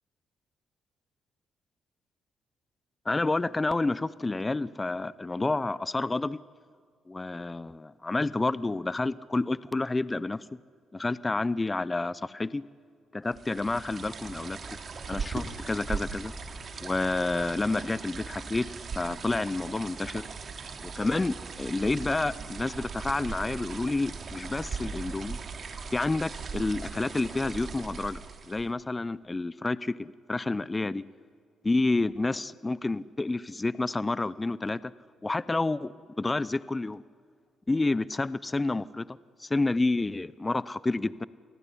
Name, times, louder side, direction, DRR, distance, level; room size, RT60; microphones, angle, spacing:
voice 1, 3.1-6.4 7.1-10.5 10.9-12.6 13.1-14.8 15.1-16.3 16.8-18.6 18.9-20.3 20.8-25.4 25.9-28.2 28.5-31.0 31.6-34.9 35.2-37.0 37.7-41.3, left 2 dB, 20° left, 19 dB, 0.7 m, -29 dB
sound 1, 13.3-28.7, right 5 dB, 45° right, 3.0 m, -39 dB
27.5 x 18.5 x 9.9 m, 2.1 s
cardioid pair, 90°, 0 cm